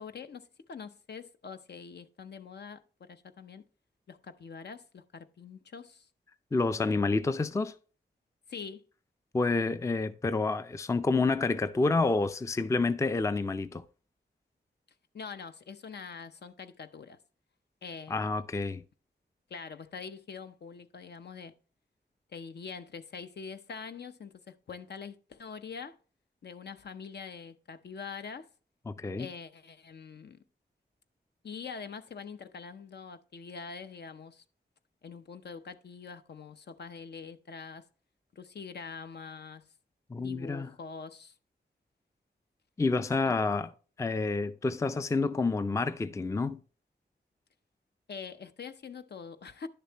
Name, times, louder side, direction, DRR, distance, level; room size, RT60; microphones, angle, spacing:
voice 1, 0.0-3.6 4.1-6.1 8.5-8.8 15.1-17.2 17.8-18.3 19.5-21.5 22.3-25.9 26.4-28.5 29.2-30.4 31.4-34.4 35.0-37.8 38.3-39.6 40.1-41.3 43.2-43.3 48.1-49.7, left 5 dB, 65° left, 0.6 m, -44 dB
voice 2, 6.5-7.7 9.3-13.8 18.1-18.8 28.9-29.3 40.1-40.7 42.8-43.7 44.0-46.6, left 3 dB, 15° left, 0.4 m, -28 dB
10.5 x 6.8 x 2.9 m
wide cardioid pair, 85°, 19 cm